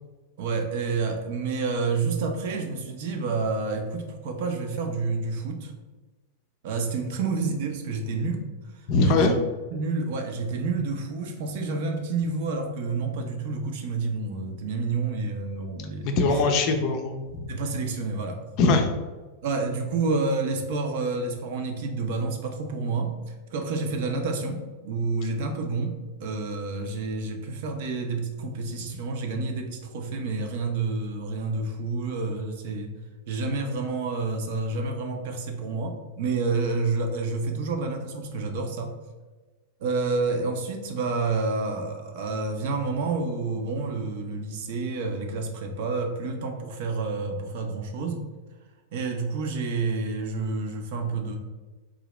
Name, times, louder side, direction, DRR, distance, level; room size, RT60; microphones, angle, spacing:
voice 1, 0.4-5.7 6.6-8.5 8.7-9.3 9.7-16.2 16.7-16.8 17.5-18.4 19.4-32.9 33.3-38.9 39.8-48.3 48.9-51.4, right 3 dB, 50° right, 4 dB, 0.5 m, -29 dB
voice 2, 8.9-9.4 16.0-17.4 18.6-18.9, left 3 dB, 40° left, 5 dB, 0.5 m, -22 dB
3.8 x 2.8 x 3.1 m, 1.2 s
figure-of-eight pair, 90°, 0 cm